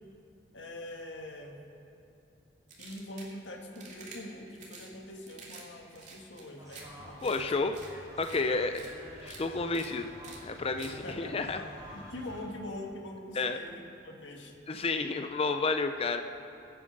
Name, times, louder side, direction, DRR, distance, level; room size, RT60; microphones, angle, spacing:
voice 1, 0.5-1.6 2.8-7.5 8.4-8.7 10.8-11.5 11.9-14.5, left 1 dB, 80° left, 2 dB, 1.7 m, -43 dB
sound 1, 2.7-3.3 3.7-4.2 4.5-4.9 5.3-5.6 5.9-6.8 7.2-7.4 7.7-7.9 8.2-8.4 8.7-8.9 9.2-9.4 9.7-9.9 10.2-10.4 10.8-10.9, right 4 dB, 40° right, 2.5 m, -49 dB
sound 2, 6.6-12.4, equal, 20° right, 3.5 m, -49 dB
voice 2, 7.2-7.7 8.2-8.7 9.2-10.1 10.4-11.6 13.4-13.6 14.7-16.2, left 3 dB, 30° left, 7 dB, 0.5 m, -30 dB
21.5 x 8.8 x 5.3 m, 2.8 s
head